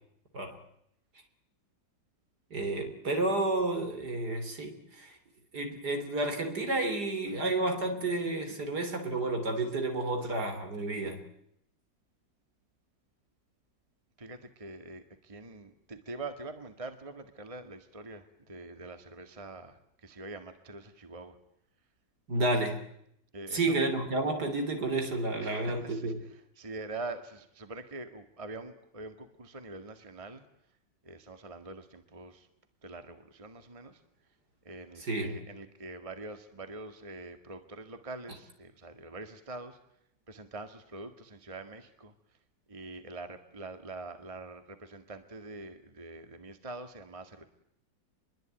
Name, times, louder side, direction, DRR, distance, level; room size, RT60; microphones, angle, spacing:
voice 1, 2.5-5.2 5.5-11.2 22.3-22.8 23.5-26.2 35.0-35.4, right 2 dB, 60° right, 6 dB, 4.0 m, -31 dB
voice 2, 14.2-21.4 23.3-23.8 25.4-26.1 26.6-30.4 31.0-32.5 32.8-34.0 34.7-39.8 40.3-42.1 42.7-47.4, right 2 dB, 20° right, 8 dB, 1.8 m, -44 dB
26.0 x 22.5 x 9.1 m, 0.75 s
omnidirectional pair, 2.0 m